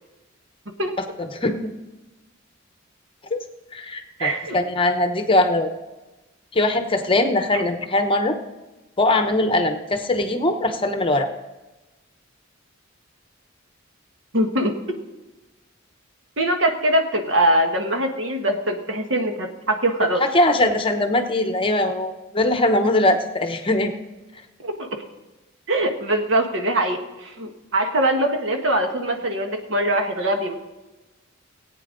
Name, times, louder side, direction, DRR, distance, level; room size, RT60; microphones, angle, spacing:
voice 1, 1.0-1.7 3.7-5.7 6.5-8.4 9.0-11.3 20.2-23.9, left 1 dB, 25° left, 7 dB, 0.9 m, -21 dB
voice 2, 4.2-4.6 7.5-7.6 14.3-14.7 16.4-20.2 24.6-24.9 25.7-30.5, right 1 dB, 65° right, 4 dB, 1.5 m, -22 dB
17.5 x 9.0 x 3.9 m, 1.1 s
head